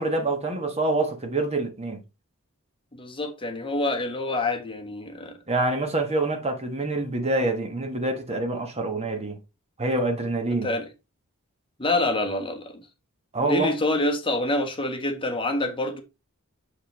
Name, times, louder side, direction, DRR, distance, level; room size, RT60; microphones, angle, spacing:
voice 1, 0.0-2.0 5.5-9.4 9.8-10.7 13.3-13.7, right 2 dB, 30° right, 1.2 m, -26 dB
voice 2, 2.9-5.4 10.6-10.9 11.8-12.8 13.4-16.0, left 2 dB, 25° left, 1.2 m, -27 dB
6.6 x 5.5 x 3.1 m
head